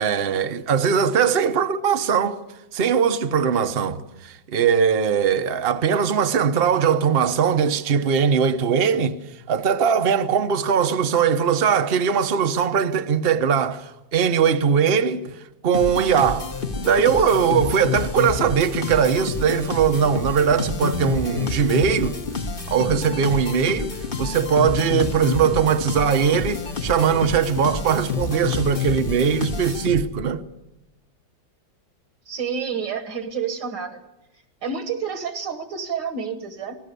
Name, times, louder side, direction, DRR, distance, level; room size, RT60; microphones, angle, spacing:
voice 1, 0.0-2.4 2.7-9.2 9.5-16.5 16.8-22.2 22.7-30.4, right 7 dB, 40° right, 1.0 m, -20 dB
sound 1, 15.7-30.3, left 4 dB, 30° left, 1.3 m, -28 dB
voice 2, 32.3-34.0 34.3-36.8, right 6 dB, 65° right, 2.1 m, -29 dB
27.5 x 19.5 x 6.9 m
omnidirectional pair, 2.1 m